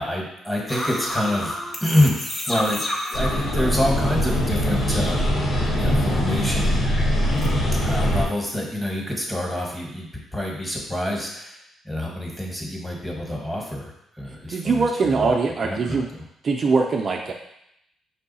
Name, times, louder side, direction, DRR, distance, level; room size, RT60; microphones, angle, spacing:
voice 1, 0.0-2.2 2.4-2.8 3.1-5.3 5.8-6.8 7.8-15.3 15.6-16.0, left 1 dB, 5° left, -2 dB, 1.4 m, -26 dB
sound 1, 0.7-4.7 5.0-7.5, left 1 dB, 30° left, 0.8 m, -31 dB
sound 2, 3.1-8.2, equal, 70° left, 1.5 m, -22 dB
voice 2, 14.5-16.1 16.4-17.3, right 4 dB, 50° right, 1 dB, 0.4 m, -22 dB
5.6 x 2.3 x 4.1 m, 0.77 s
cardioid pair, 90°, 0 cm